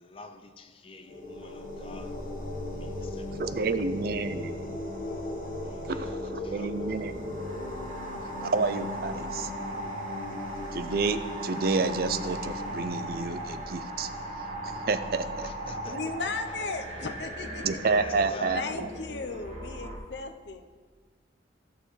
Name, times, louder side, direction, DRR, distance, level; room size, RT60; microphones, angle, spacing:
voice 1, 0.0-2.1 2.7-3.7 5.6-6.7 15.4-16.0 17.9-18.7, left 3 dB, 30° left, 7 dB, 0.6 m, -46 dB
sound 1, 0.9-14.5, left 2 dB, 45° left, 0.9 m, -41 dB
sound 2, 1.1-20.0, equal, 35° right, 2.0 m, -37 dB
voice 2, 3.4-4.5 5.9-7.2 8.5-9.5 10.7-14.1 14.6-15.5 17.6-18.9, right 4 dB, 50° right, 11 dB, 0.4 m, -29 dB
voice 3, 15.9-17.8 18.5-20.6, left 4 dB, 70° left, 7 dB, 0.7 m, -36 dB
15.0 x 6.7 x 3.2 m, 1.5 s
head